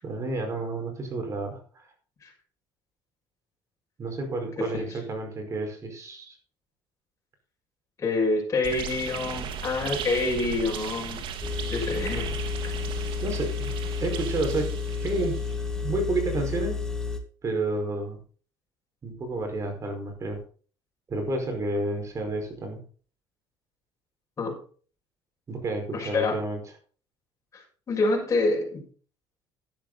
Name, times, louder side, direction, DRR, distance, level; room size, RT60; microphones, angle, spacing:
voice 1, 0.0-1.9 4.0-6.4 13.2-13.7 14.0-15.4 15.8-16.8 17.4-18.2 19.0-20.4 21.1-22.8 25.5-26.6, right 2 dB, 30° right, 3 dB, 5.2 m, -30 dB
voice 2, 8.0-11.2 11.7-12.3 24.4-24.5 25.9-26.4 27.5-27.6 27.9-28.8, left 3 dB, 30° left, -1 dB, 6.4 m, -26 dB
sound 1, 8.6-15.7, right 7 dB, 60° right, 1.9 m, -37 dB
Engine, 11.4-17.2, left 5 dB, 5° left, 2.1 m, -31 dB
12.0 x 10.5 x 4.2 m, 0.41 s
cardioid pair, 125°, 10 cm